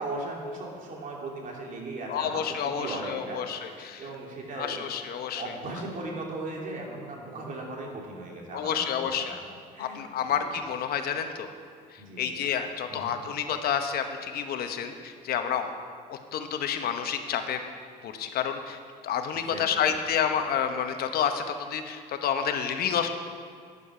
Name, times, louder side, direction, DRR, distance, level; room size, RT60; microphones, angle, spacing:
voice 1, 0.0-4.8 5.3-9.3 9.7-10.1 10.4-10.5 12.0-12.3 12.9-13.1 19.3-19.8, right 2 dB, 50° right, -1 dB, 2.8 m, -38 dB
voice 2, 2.1-4.0 4.6-5.4 8.5-9.4 9.8-11.5 12.2-15.7 16.1-17.6 18.0-21.4 21.7-23.1, left 8 dB, 65° left, 7 dB, 1.0 m, -29 dB
12.0 x 9.8 x 5.0 m, 2.1 s
cardioid pair, 110°, 17 cm